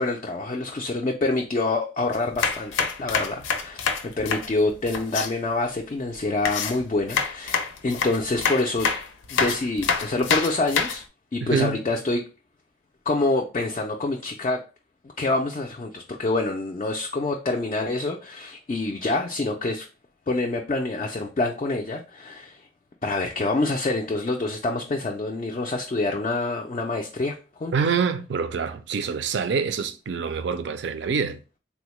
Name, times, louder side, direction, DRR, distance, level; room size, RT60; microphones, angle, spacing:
voice 1, 0.0-8.9 9.3-11.0 11.3-12.2 13.1-14.6 15.2-19.9 20.3-22.6 23.0-27.7, left 2 dB, 35° left, 0.3 m, -26 dB
sound 1, 2.1-5.3 6.5-11.0, left 5 dB, 85° left, 0.5 m, -26 dB
voice 2, 11.4-11.8 27.7-31.4, right 5 dB, 65° right, 0.4 m, -26 dB
3.6 x 2.0 x 3.0 m
head